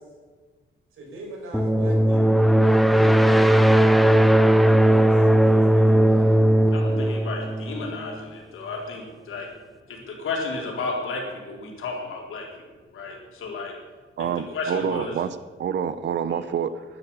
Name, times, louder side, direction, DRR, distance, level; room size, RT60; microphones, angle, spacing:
voice 1, 0.9-4.2 4.4-6.3, right 1 dB, 90° right, 0 dB, 5.4 m, -39 dB
sound 1, 1.5-8.2, right 1 dB, ahead, 0.6 m, -18 dB
voice 2, 6.7-9.5 9.9-12.7 12.9-13.7 14.2-15.2 16.3-16.5, left 3 dB, 85° left, -1 dB, 4.0 m, -33 dB
voice 3, 14.2-16.8, right 8 dB, 60° right, 13 dB, 0.8 m, -27 dB
12.0 x 11.0 x 8.7 m, 1.4 s
wide cardioid pair, 165°, 21 cm